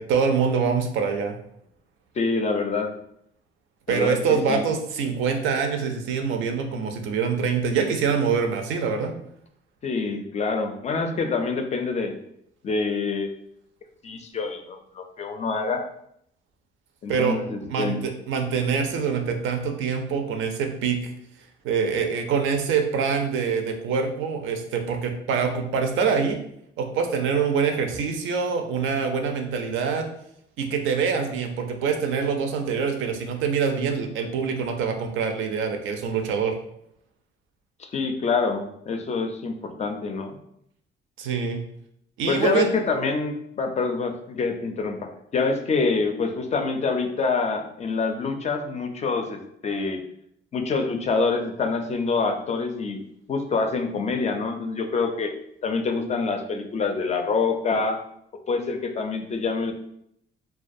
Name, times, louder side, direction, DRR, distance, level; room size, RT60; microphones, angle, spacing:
voice 1, 0.0-1.4 3.9-9.1 17.1-21.1 21.6-26.4 26.8-30.1 30.6-36.6 41.2-41.6 42.2-42.7, right 6 dB, 80° right, 5 dB, 0.4 m, -25 dB
voice 2, 2.2-2.9 3.9-4.6 9.8-12.1 12.6-13.3 14.0-15.9 17.0-18.0 37.8-40.4 42.3-50.0 50.5-53.0 53.3-55.3 55.6-58.0 58.5-59.7, left 4 dB, 35° left, 6 dB, 0.4 m, -26 dB
2.3 x 2.2 x 2.6 m, 0.73 s
cardioid pair, 90°, 20 cm